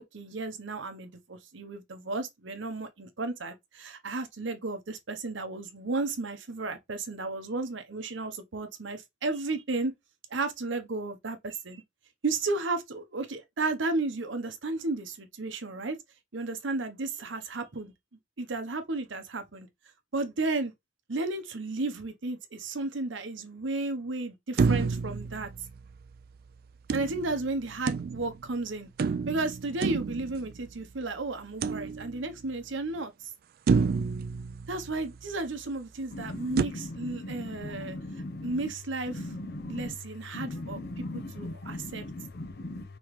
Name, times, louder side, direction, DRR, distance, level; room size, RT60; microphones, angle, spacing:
voice 1, 0.0-9.9 10.3-11.8 12.2-16.0 16.3-17.9 18.4-19.7 20.1-20.7 21.1-25.5 26.9-28.9 29.3-33.3 34.7-38.0 38.4-39.3 39.7-42.1, right 3 dB, 80° right, 0.9 m, -33 dB
sound 1, 24.6-26.2 26.9-28.5 29.0-30.9 31.6-32.5 33.0-33.1 33.7-35.3 36.6-36.7, right 5 dB, 50° right, 0.3 m, -29 dB
voice 2, 36.1-36.5 37.3-37.4 37.7-38.5 39.2-39.9 40.3-42.8, left 2 dB, 55° left, 0.7 m, -38 dB
5.6 x 3.1 x 3.1 m
head